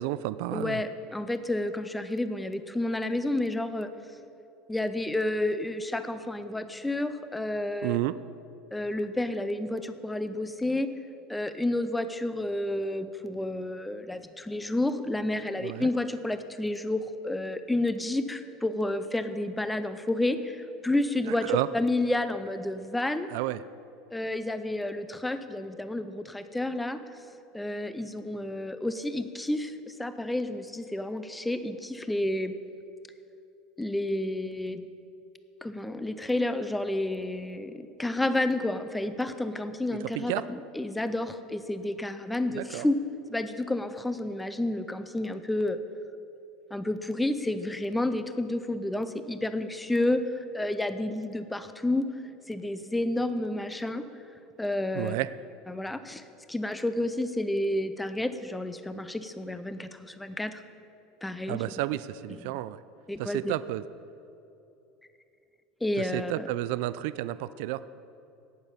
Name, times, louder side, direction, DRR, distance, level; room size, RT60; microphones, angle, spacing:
voice 1, 0.0-0.8 7.8-8.2 15.6-15.9 21.3-21.7 23.3-23.6 40.0-40.4 42.5-42.9 54.9-55.3 61.5-62.8 63.2-63.8 66.0-67.8, right 16 dB, 65° right, 15 dB, 0.3 m, -31 dB
voice 2, 0.5-3.9 4.7-8.0 8.7-10.9 11.3-23.3 24.1-27.2 27.5-32.6 33.8-34.8 35.6-43.0 43.3-45.8 46.7-52.1 52.5-54.0 54.6-55.1 55.7-60.6 61.2-61.6 62.4-62.5 63.1-63.5 65.8-66.5, left 1 dB, 5° left, 11 dB, 0.4 m, -30 dB
17.5 x 7.0 x 5.6 m, 2.8 s
cardioid pair, 170°, 0 cm